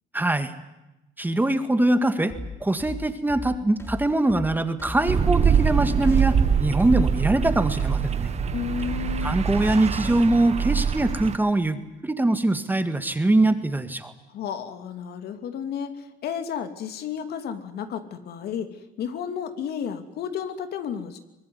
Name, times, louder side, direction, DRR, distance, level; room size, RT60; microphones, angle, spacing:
voice 1, 0.1-0.5 1.2-2.3 2.6-8.3 9.2-14.1, right 2 dB, 10° right, 9 dB, 2.0 m, -23 dB
sound 1, 2.3-10.3, left 2 dB, 15° left, 3.1 m, -37 dB
sound 2, 5.1-11.4, right 7 dB, 40° right, 1.5 m, -24 dB
voice 2, 8.5-9.4 14.3-21.2, left 8 dB, 70° left, 8 dB, 2.7 m, -32 dB
24.0 x 20.5 x 9.6 m, 0.96 s
cardioid pair, 110°, 17 cm